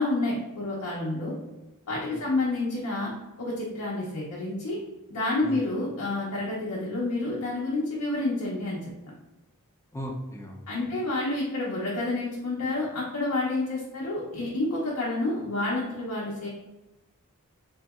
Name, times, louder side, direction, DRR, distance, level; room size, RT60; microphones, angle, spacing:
voice 1, 0.0-1.3 1.9-3.1 3.4-4.8 5.1-8.8 10.7-16.5, left 2 dB, 80° left, -5 dB, 0.6 m, -29 dB
voice 2, 9.9-10.9, equal, 15° left, 0 dB, 0.4 m, -37 dB
2.7 x 2.7 x 2.3 m, 1.0 s
head